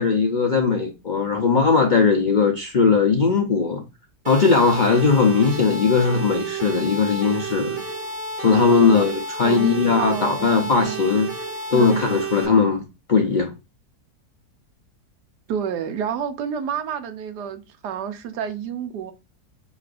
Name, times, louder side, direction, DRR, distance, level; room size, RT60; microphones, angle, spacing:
voice 1, 0.0-3.8 4.3-7.8 8.4-11.3 11.7-12.8 13.1-13.5, left 5 dB, 75° left, 0.4 m, -19 dB
sound 1, 4.2-12.4, right 3 dB, 35° right, 1.5 m, -31 dB
voice 2, 9.4-11.3 11.7-12.1 15.5-19.1, right 8 dB, 90° right, 1.3 m, -30 dB
5.9 x 3.1 x 2.5 m
omnidirectional pair, 1.7 m